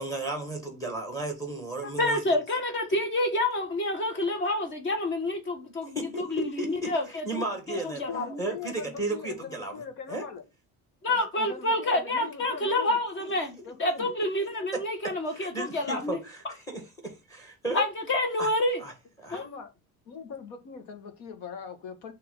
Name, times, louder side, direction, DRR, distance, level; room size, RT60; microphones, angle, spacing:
voice 1, 0.0-2.2 5.9-6.9 7.2-8.0 8.4-9.8 10.1-10.2 15.3-17.8 18.4-18.5 18.8-18.9 19.2-19.4, right 2 dB, 10° left, 1.4 m, -34 dB
voice 2, 2.0-8.4 11.0-16.2 17.7-18.8 19.3-19.4, left 1 dB, 35° left, 1.3 m, -28 dB
voice 3, 8.1-10.4 11.1-13.0 13.7-14.1 19.3-19.7 20.1-22.1, left 6 dB, 80° left, 1.6 m, -41 dB
6.0 x 3.2 x 5.4 m
cardioid pair, 175°, 32 cm